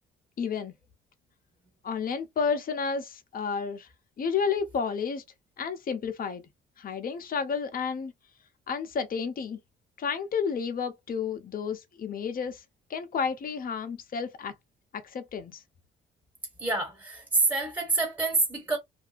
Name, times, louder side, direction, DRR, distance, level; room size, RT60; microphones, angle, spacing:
voice 1, 0.4-0.7 1.8-3.9 4.2-5.2 5.6-6.5 6.8-8.1 8.7-9.6 10.0-12.6 12.9-14.5 14.9-15.6, left 6 dB, 45° left, 0.7 m, -31 dB
voice 2, 16.6-18.8, right 3 dB, 10° right, 1.5 m, -27 dB
2.7 x 2.4 x 2.5 m
cardioid pair, 80°, 21 cm